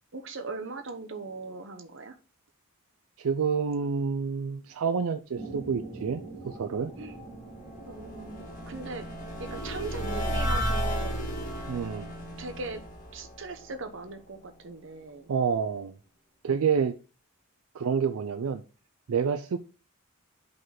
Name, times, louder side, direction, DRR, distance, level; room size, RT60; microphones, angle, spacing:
voice 1, 0.1-2.1 7.0-7.2 7.8-9.1 9.4-11.3 12.4-12.8 13.1-15.3, right 3 dB, 60° right, 0.9 m, -39 dB
voice 2, 3.2-6.9 11.7-12.1 15.3-16.0 16.4-17.0 17.7-18.6 19.1-19.6, right 6 dB, 85° right, 0.4 m, -28 dB
sound 1, 5.3-10.4, right 2 dB, 15° right, 1.4 m, -44 dB
sound 2, 7.0-14.2, equal, 35° left, 1.7 m, -34 dB
5.3 x 3.9 x 5.8 m
head